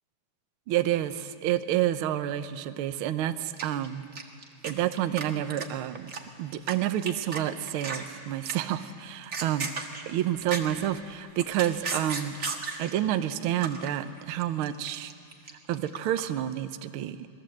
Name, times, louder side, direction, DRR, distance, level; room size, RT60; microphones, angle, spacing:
voice 1, 0.7-4.0 4.6-6.1 6.4-9.7 10.1-12.4 12.8-15.1 15.7-17.3, right 12 dB, 90° right, 10 dB, 1.1 m, -29 dB
sound 1, 3.6-4.7 5.0-6.7 7.1-7.4 7.7-8.1 8.4-8.8 9.1-10.8 11.2-12.9 13.3-13.9 14.2-16.3, right 4 dB, 35° right, 1.3 m, -35 dB
28.0 x 20.0 x 7.8 m, 2.3 s
omnidirectional pair, 3.5 m